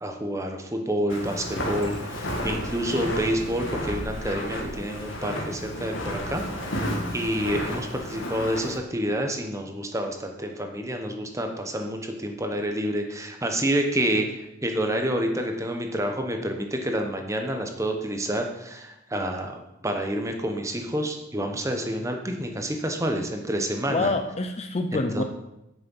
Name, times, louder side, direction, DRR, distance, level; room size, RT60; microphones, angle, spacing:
voice 1, 0.0-6.4 6.7-6.8 7.1-14.3 14.6-24.1 24.9-25.2, right 1 dB, 15° right, 4 dB, 1.0 m, -28 dB
Walk footsteps, 1.1-8.8, equal, 70° left, 1.5 m, -32 dB
voice 2, 23.9-25.2, left 2 dB, 30° left, 7 dB, 0.5 m, -26 dB
9.7 x 6.6 x 5.5 m, 0.90 s
head